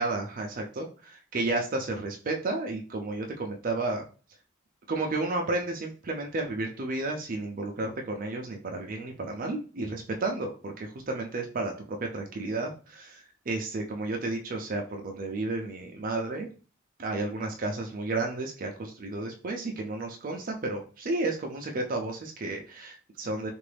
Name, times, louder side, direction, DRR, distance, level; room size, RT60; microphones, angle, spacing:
voice 1, 0.0-4.0 4.9-16.5 17.0-23.5, right 2 dB, 45° right, 2 dB, 0.5 m, -32 dB
3.8 x 2.5 x 3.3 m, 0.37 s
head